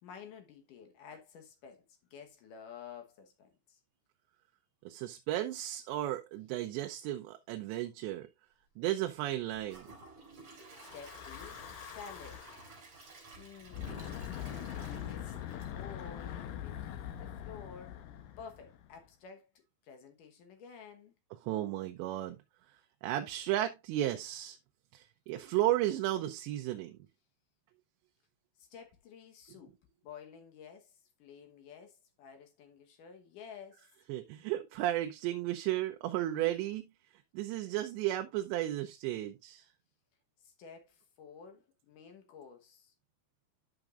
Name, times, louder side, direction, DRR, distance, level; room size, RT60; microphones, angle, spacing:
voice 1, 0.0-3.8 10.8-12.4 13.4-14.3 14.8-18.0 18.4-21.1 28.6-29.8 30.0-33.9 40.4-42.9, left 6 dB, 65° left, 2.2 m, -52 dB
voice 2, 4.9-8.3 8.8-9.9 13.9-14.0 21.4-22.4 23.0-24.6 24.9-27.0 34.1-36.9 37.3-39.7, right 14 dB, 85° right, 2.8 m, -34 dB
Gurgling / Toilet flush / Trickle dribble, 9.4-16.5 16.9-17.0 17.5-17.6, right 3 dB, 40° right, 3.4 m, -54 dB
Breathing / Wind, 10.8-12.7 13.6-19.0, left 10 dB, 85° left, 1.9 m, -43 dB
11.5 x 6.0 x 2.4 m
omnidirectional pair, 5.0 m